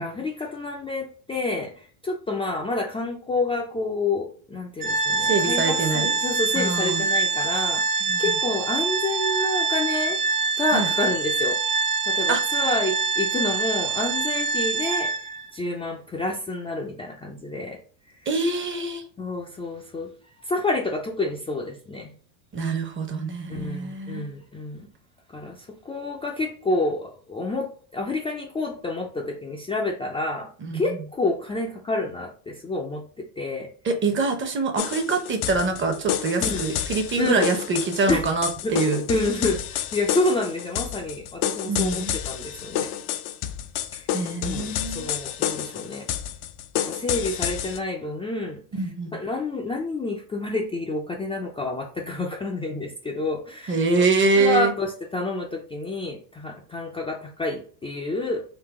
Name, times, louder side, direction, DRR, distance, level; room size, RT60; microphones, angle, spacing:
voice 1, 0.0-10.2 10.6-11.6 12.0-17.8 18.1-18.2 19.2-20.1 20.4-22.1 23.5-24.9 25.3-33.7 36.4-36.7 37.2-37.5 38.1-38.3 38.6-38.7 39.1-42.9 44.0-44.1 44.4-46.1 46.8-48.6 49.1-54.0 54.4-58.4, left 2 dB, 10° left, -2 dB, 0.4 m, -29 dB
Organ, 4.8-15.5, right 4 dB, 45° right, 1.0 m, -25 dB
voice 2, 5.2-6.1 6.5-7.1 8.1-8.3 10.7-10.9 12.3-12.4 18.3-19.0 22.5-24.3 30.6-31.0 33.8-39.0 41.6-42.2 44.1-45.1 48.8-49.2 53.7-54.7, right 3 dB, 25° right, 6 dB, 0.7 m, -25 dB
sound 1, 34.8-47.8, left 10 dB, 65° left, 0.7 m, -29 dB
3.9 x 2.6 x 3.6 m, 0.43 s
supercardioid pair, 115°, 49 cm